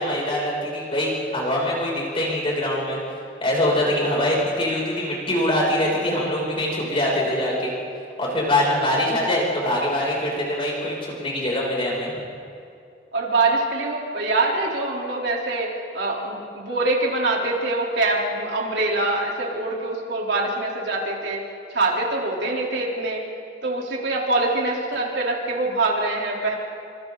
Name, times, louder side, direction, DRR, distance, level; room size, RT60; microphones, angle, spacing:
voice 1, 0.0-3.0 3.4-7.7 8.2-12.2, left 1 dB, 30° left, -4 dB, 7.1 m, -23 dB
voice 2, 13.1-21.4 21.7-23.2 23.6-26.6, right 2 dB, 75° right, -2 dB, 4.0 m, -24 dB
29.0 x 26.5 x 4.1 m, 2.4 s
head